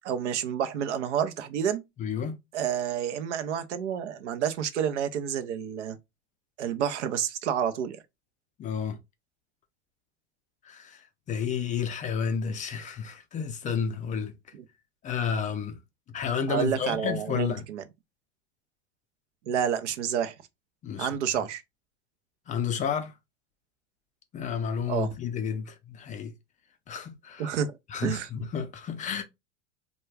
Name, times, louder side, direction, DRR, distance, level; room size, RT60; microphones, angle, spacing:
voice 1, 0.0-1.8 2.5-6.0 6.6-8.0 14.5-14.6 16.5-17.8 19.5-20.3 21.0-21.6 24.9-25.1 27.4-27.8 28.0-28.3, right 8 dB, 85° right, 0.5 m, -29 dB
voice 2, 2.0-2.4 8.6-9.0 10.6-11.0 11.3-14.3 15.0-15.8 16.1-17.6 20.8-21.1 22.5-23.1 24.3-26.3 26.9-27.5 27.9-29.2, left 7 dB, 25° left, 0.3 m, -31 dB
2.2 x 2.2 x 3.2 m
hypercardioid pair, 100°, 34 cm